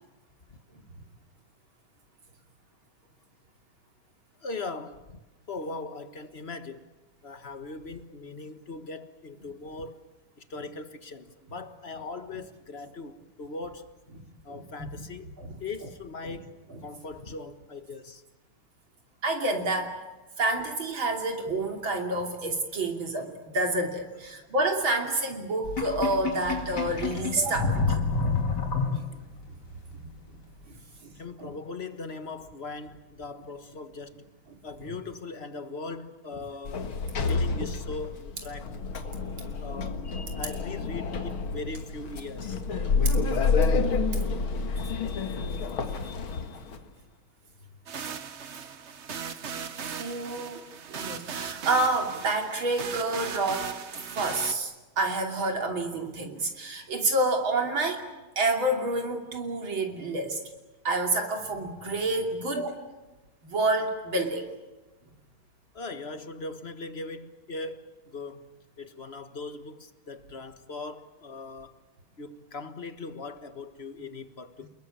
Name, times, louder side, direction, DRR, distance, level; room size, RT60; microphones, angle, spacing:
voice 1, 4.4-5.2 5.5-6.9 7.2-10.0 10.4-13.9 14.4-15.3 15.6-16.6 16.8-18.2 24.3-24.4 30.7-30.8 31.2-34.2 34.6-36.9 37.3-38.8 39.6-40.0 40.3-42.6 65.7-68.5 68.8-71.8 72.2-74.7, left 3 dB, 35° left, 1.5 m, -40 dB
voice 2, 14.5-15.1 15.4-15.6 16.2-16.4 16.7-16.8 19.2-19.9 20.4-28.1 30.0-30.2 30.7-30.8 31.0-31.1 31.4-31.5 34.8-34.9 50.0-50.6 50.9-53.7 54.2-58.1 58.4-60.4 60.8-62.7 63.4-64.5, right 2 dB, 70° right, 3.7 m, -28 dB
Sink (filling or washing), 25.6-29.4, left 4 dB, 50° left, 3.4 m, -28 dB
Sliding door, 36.6-46.8, left 4 dB, 75° left, 2.6 m, -29 dB
sound 1, 47.9-54.5, right 6 dB, 45° right, 1.0 m, -38 dB
29.5 x 21.0 x 8.8 m
omnidirectional pair, 2.3 m